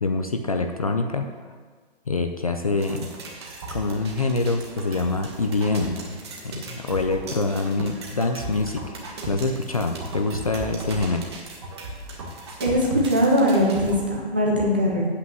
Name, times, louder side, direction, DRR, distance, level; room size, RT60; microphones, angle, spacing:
voice 1, 0.0-1.3 2.1-3.1 3.7-6.0 6.4-8.8 9.3-11.3, left 3 dB, 35° left, 5 dB, 0.5 m, -25 dB
sound 1, 2.8-14.0, right 2 dB, 25° right, 1.3 m, -36 dB
voice 2, 12.6-15.0, equal, 10° right, -3 dB, 0.6 m, -21 dB
8.3 x 5.5 x 7.6 m, 1.5 s
hypercardioid pair, 180°, 31 cm